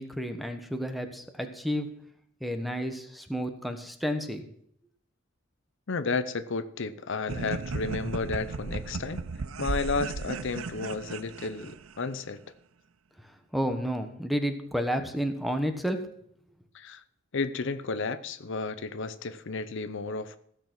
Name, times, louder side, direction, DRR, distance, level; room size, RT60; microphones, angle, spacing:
voice 1, 0.0-1.9 2.4-4.5 13.5-16.0, equal, ahead, 7 dB, 1.2 m, -31 dB
voice 2, 5.9-9.2 9.6-12.4 16.7-17.0 17.3-20.4, left 4 dB, 65° left, 12 dB, 0.7 m, -32 dB
sound 1, 7.3-12.1, right 4 dB, 90° right, 0.6 m, -35 dB
15.5 x 6.9 x 6.0 m, 0.68 s
head